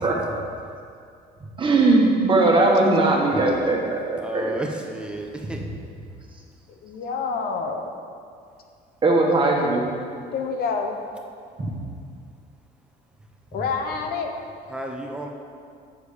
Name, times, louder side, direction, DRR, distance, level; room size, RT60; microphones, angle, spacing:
voice 1, 1.6-4.5 9.0-9.9, right 2 dB, 30° right, -1 dB, 1.6 m, -19 dB
voice 2, 4.2-5.6 14.7-15.3, right 1 dB, 5° right, 1 dB, 1.0 m, -31 dB
voice 3, 6.8-7.9 10.3-11.0 13.5-14.3, left 5 dB, 65° left, 4 dB, 0.9 m, -27 dB
7.9 x 7.0 x 5.1 m, 2.3 s
cardioid pair, 110°, 17 cm